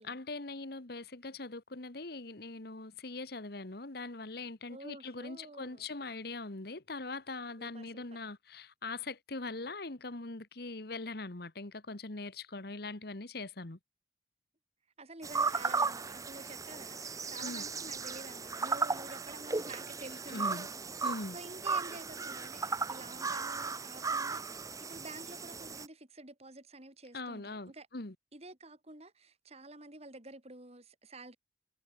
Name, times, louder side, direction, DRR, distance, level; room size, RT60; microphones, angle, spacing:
voice 1, 0.0-13.8 17.4-17.6 20.3-20.7 21.0-21.4 27.1-28.1, left 3 dB, 60° left, 1.6 m, -41 dB
voice 2, 4.7-5.9 7.6-8.0 15.0-20.7 21.3-27.9 28.3-31.4, right 2 dB, 35° right, 4.5 m, -50 dB
sound 1, 15.2-25.9, right 4 dB, 20° right, 0.7 m, -36 dB
head